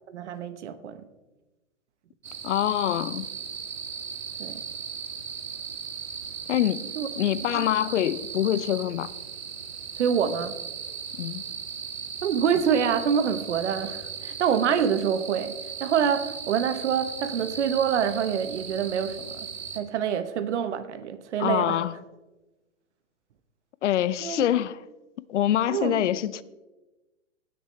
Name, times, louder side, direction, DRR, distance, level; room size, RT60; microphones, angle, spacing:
voice 1, 0.1-1.1 4.4-4.6 7.0-7.1 7.5-7.7 9.9-10.5 12.2-19.5 19.7-21.8 24.2-24.5 25.7-26.0, right 7 dB, 60° right, 1.0 m, -26 dB
sound 1, 2.2-19.8, right 7 dB, 90° right, 1.3 m, -37 dB
voice 2, 2.4-3.3 6.5-6.9 7.2-9.1 11.2-11.4 21.4-21.9 23.8-24.8 25.3-26.4, left 12 dB, 65° left, 0.6 m, -25 dB
18.0 x 6.8 x 3.3 m
hypercardioid pair, 140°, 39 cm